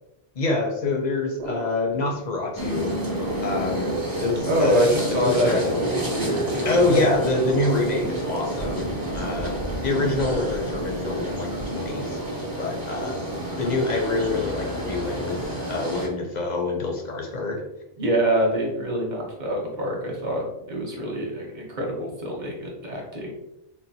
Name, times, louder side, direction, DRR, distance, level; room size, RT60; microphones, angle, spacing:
voice 1, 0.4-3.0 3.4-4.9 5.2-5.9 6.6-12.2 12.6-13.2 13.6-15.4 15.7-17.6, left 2 dB, 55° left, 1 dB, 0.5 m, -26 dB
sound 1, 1.4-2.6 2.9-16.0, right 3 dB, 85° right, 1.0 m, -39 dB
sound 2, 2.6-16.1, right 1 dB, 25° right, 0.7 m, -30 dB
voice 2, 4.5-7.1 18.0-23.3, equal, 50° right, -1 dB, 0.9 m, -25 dB
3.8 x 2.2 x 2.6 m, 0.90 s
omnidirectional pair, 1.1 m